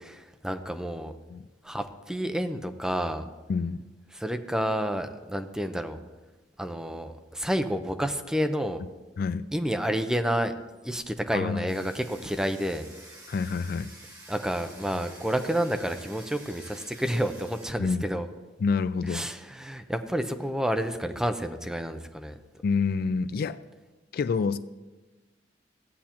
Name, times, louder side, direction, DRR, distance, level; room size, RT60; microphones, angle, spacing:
voice 1, 0.1-1.1 1.6-3.3 4.1-6.0 6.6-8.8 9.5-10.5 10.8-12.9 14.3-18.3 19.1-22.4, equal, 5° right, 7 dB, 0.5 m, -29 dB
voice 2, 11.3-11.7 13.3-13.9 17.8-18.0 18.6-19.3 22.6-23.6 24.1-24.6, left 5 dB, 55° left, 14 dB, 0.3 m, -27 dB
Domestic sounds home sounds, 11.7-17.7, right 1 dB, 20° right, 1.8 m, -49 dB
15.5 x 8.4 x 2.9 m, 1.2 s
head